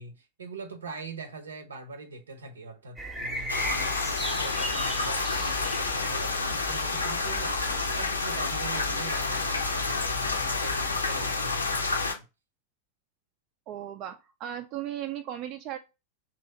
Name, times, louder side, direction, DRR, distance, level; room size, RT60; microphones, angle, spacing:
voice 1, 0.0-12.3, right 3 dB, 70° right, 0.7 m, -42 dB
sound 1, 3.0-11.3, right 1 dB, 10° right, 0.7 m, -39 dB
sound 2, 3.5-12.1, left 3 dB, 80° left, 0.6 m, -29 dB
voice 2, 13.7-15.8, right 11 dB, 40° right, 0.3 m, -36 dB
3.1 x 2.6 x 4.3 m
figure-of-eight pair, 90°, 0 cm